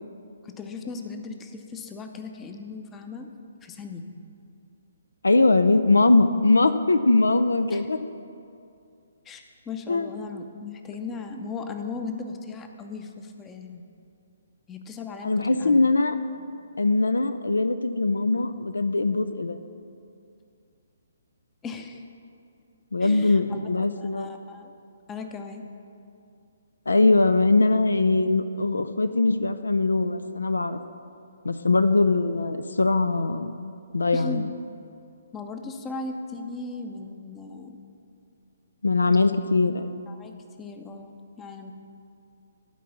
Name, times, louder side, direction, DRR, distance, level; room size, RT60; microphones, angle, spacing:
voice 1, 0.4-3.3 3.6-4.1 7.7-7.8 9.2-13.8 14.7-15.9 21.6-22.0 23.0-23.6 24.0-24.7 25.1-25.6 34.1-34.5 35.3-37.8 40.1-41.7, left 4 dB, 15° left, 5 dB, 0.7 m, -37 dB
voice 2, 5.2-8.0 9.9-10.1 15.2-16.2 16.8-19.6 22.9-24.3 26.9-30.8 31.4-34.5 38.8-40.1, left 3 dB, 75° left, 11 dB, 0.4 m, -21 dB
12.0 x 4.7 x 7.1 m, 2.5 s
figure-of-eight pair, 135°, 0 cm